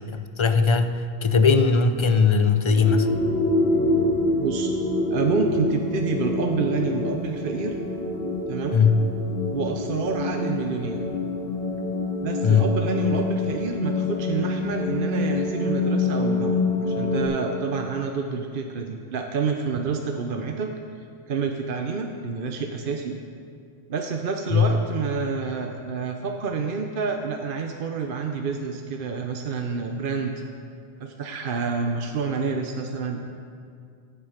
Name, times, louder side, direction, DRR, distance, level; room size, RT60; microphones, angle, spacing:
voice 1, 0.1-3.1 8.7-9.0 12.4-12.7 24.5-24.7, left 5 dB, 40° left, 9 dB, 0.4 m, -19 dB
sound 1, 2.8-17.3, left 2 dB, 55° left, 3.6 m, -26 dB
voice 2, 4.4-4.7 5.1-7.7 8.5-8.8 9.5-11.0 12.2-20.7 21.3-23.2 23.9-30.3 31.0-33.2, right 5 dB, 55° right, 3 dB, 0.9 m, -28 dB
16.0 x 7.3 x 5.1 m, 2.3 s
omnidirectional pair, 1.1 m